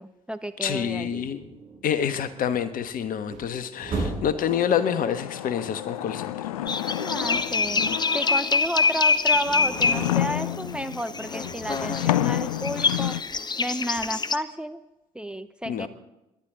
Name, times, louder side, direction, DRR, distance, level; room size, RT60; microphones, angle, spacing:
voice 1, 0.0-1.3 7.0-13.2 13.6-14.8 15.1-15.9, equal, 5° right, 10 dB, 0.8 m, -32 dB
voice 2, 0.6-1.4 1.8-6.3 15.6-15.9, left 8 dB, 50° left, 12 dB, 1.3 m, -27 dB
sound 1, 0.7-4.5 5.9-8.0 8.3-14.1, right 3 dB, 55° right, 5.5 m, -39 dB
sound 2, 4.4-8.7 9.3-13.2, left 13 dB, 80° left, 0.5 m, -30 dB
sound 3, 6.7-14.4, left 4 dB, 25° left, 0.9 m, -25 dB
26.5 x 12.0 x 3.8 m, 0.93 s
figure-of-eight pair, 50°, 18 cm